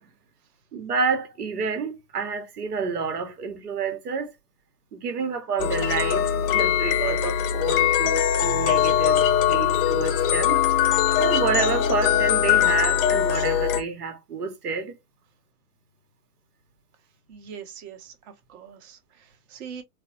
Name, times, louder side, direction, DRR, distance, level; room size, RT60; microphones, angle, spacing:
voice 1, 0.7-4.3 4.9-15.0, right 5 dB, 75° right, 1.2 m, -29 dB
sound 1, 5.6-13.8, left 9 dB, 35° left, 0.6 m, -21 dB
voice 2, 17.3-19.8, right 7 dB, 45° right, 1.2 m, -42 dB
4.0 x 2.1 x 2.8 m
figure-of-eight pair, 110°, 47 cm